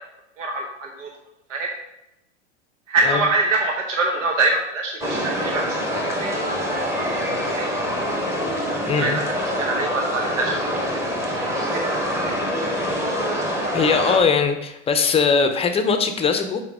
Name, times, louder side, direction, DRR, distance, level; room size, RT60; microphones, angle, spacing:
voice 1, 0.4-1.1 1.5-1.7 2.9-6.5 6.9-7.0 7.5-7.7 8.8-9.3 9.6-10.6 11.3-12.3, right 3 dB, 80° right, 2 dB, 1.0 m, -25 dB
sound 1, 5.0-14.2, equal, 5° right, 1.0 m, -25 dB
voice 2, 8.9-9.2 13.7-16.6, left 5 dB, 15° left, 7 dB, 0.6 m, -20 dB
5.8 x 4.5 x 4.8 m, 0.89 s
hypercardioid pair, 100°, 37 cm